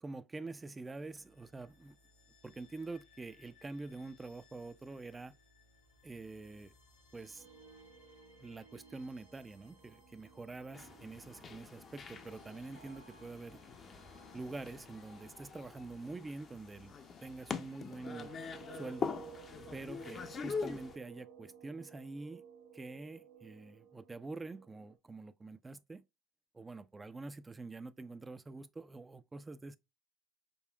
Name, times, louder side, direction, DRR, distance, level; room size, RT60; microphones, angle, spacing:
voice 1, 0.0-2.0 2.4-5.3 6.0-6.7 7.1-7.5 8.4-13.6 14.3-17.0 17.2-18.3 18.7-19.2 19.7-22.4 22.7-26.0 26.5-29.8, right 3 dB, 20° right, 0.3 m, -46 dB
sound 1, 0.9-19.4, left 2 dB, 85° left, 2.3 m, -67 dB
sound 2, 7.4-25.0, right 8 dB, 70° right, 0.6 m, -57 dB
sound 3, 10.7-21.0, left 5 dB, 35° left, 0.5 m, -44 dB
5.2 x 2.4 x 2.2 m
hypercardioid pair, 75°, 0 cm